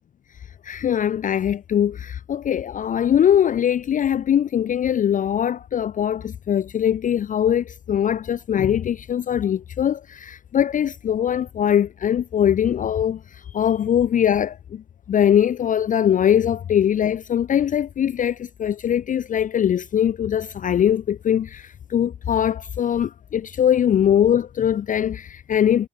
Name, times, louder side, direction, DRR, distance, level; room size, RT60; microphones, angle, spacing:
voice 1, 0.6-13.2 13.5-14.8 15.1-25.9, left 9 dB, 40° left, 0.4 m, -21 dB
cardioid pair, 90°, 20 cm